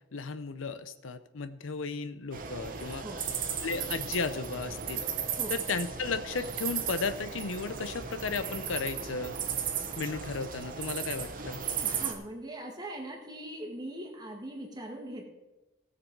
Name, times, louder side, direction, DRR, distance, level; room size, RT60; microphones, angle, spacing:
voice 1, 0.1-3.0 3.6-5.0 5.5-9.4 10.0-11.6, left 4 dB, 85° left, 12 dB, 0.7 m, -34 dB
sound 1, 2.3-12.1, right 7 dB, 45° right, 1.1 m, -36 dB
voice 2, 11.8-15.3, right 1 dB, 20° right, 1 dB, 1.8 m, -41 dB
17.0 x 6.8 x 4.7 m, 1.1 s
head